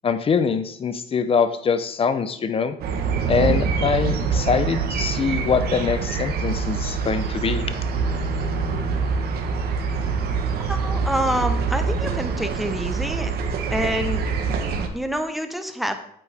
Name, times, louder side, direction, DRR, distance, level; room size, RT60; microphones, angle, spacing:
voice 1, 0.0-2.8 3.3-7.6, left 6 dB, 35° left, 11 dB, 0.8 m, -23 dB
sound 1, 2.8-14.9, right 5 dB, 65° right, 1.2 m, -25 dB
Bowed string instrument, 7.9-11.2, left 11 dB, 75° left, 1.0 m, -39 dB
voice 2, 10.6-13.3 13.7-14.2 14.8-16.0, equal, ahead, 7 dB, 1.0 m, -27 dB
8.8 x 8.3 x 3.5 m, 0.67 s
cardioid pair, 110°, 17 cm